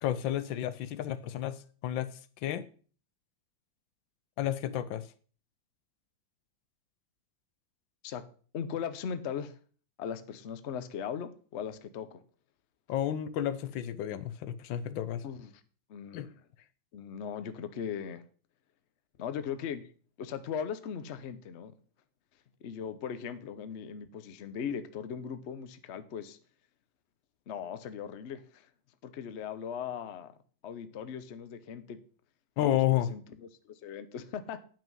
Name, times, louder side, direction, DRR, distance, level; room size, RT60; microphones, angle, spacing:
voice 1, 0.0-2.6 4.4-5.1 12.9-15.2 16.1-16.3 32.6-33.1, left 12 dB, 80° left, 1.4 m, -31 dB
voice 2, 8.5-9.6 10.0-12.2 15.2-15.6 15.9-16.4 16.9-18.2 19.2-19.8 20.2-21.7 22.6-26.4 27.5-28.7 29.0-30.3 30.6-32.0 32.6-34.6, left 7 dB, 60° left, 0.7 m, -39 dB
9.0 x 6.0 x 5.3 m
omnidirectional pair, 2.1 m